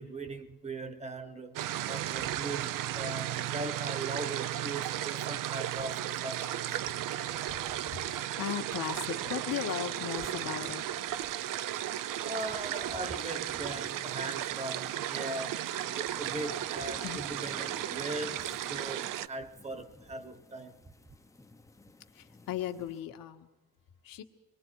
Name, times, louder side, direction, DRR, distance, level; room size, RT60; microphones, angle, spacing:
voice 1, 0.0-1.6 1.9-6.8 12.2-20.7, right 2 dB, 20° right, 1.2 m, -40 dB
sound 1, 1.6-19.3, right 12 dB, 65° right, 0.6 m, -35 dB
voice 2, 7.9-10.8 17.0-17.2 22.1-23.5 24.0-24.2, left 11 dB, 75° left, 1.7 m, -37 dB
sound 2, 11.0-23.0, left 2 dB, 10° left, 0.7 m, -58 dB
26.5 x 22.0 x 4.7 m
cardioid pair, 170°, 34 cm